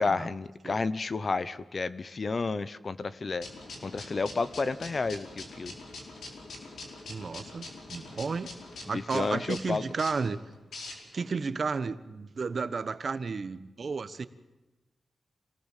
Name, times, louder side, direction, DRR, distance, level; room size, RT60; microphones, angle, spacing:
voice 1, 0.0-3.5 3.8-5.7 8.9-9.8, left 4 dB, 40° left, 16 dB, 0.8 m, -31 dB
sound 1, 3.4-11.3, left 2 dB, 80° left, 4.8 m, -44 dB
voice 2, 7.1-8.5 8.8-10.4 11.1-14.3, right 4 dB, 50° right, 12 dB, 1.2 m, -33 dB
27.0 x 18.5 x 7.4 m, 1.1 s
wide cardioid pair, 110°, 0 cm